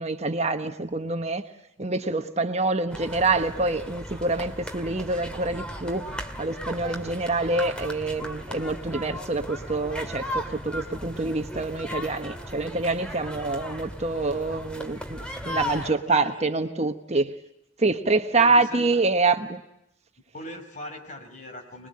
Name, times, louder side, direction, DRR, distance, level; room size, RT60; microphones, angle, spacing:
voice 1, 0.0-1.4 1.8-6.1 6.4-17.3 17.8-19.6, right 3 dB, 35° right, 7 dB, 1.2 m, -26 dB
sound 1, 2.9-15.9, equal, 5° left, 2.3 m, -36 dB
voice 2, 15.2-16.6 18.3-19.0 20.3-21.9, left 1 dB, 40° left, 4 dB, 5.2 m, -41 dB
26.0 x 21.5 x 8.6 m, 0.82 s
head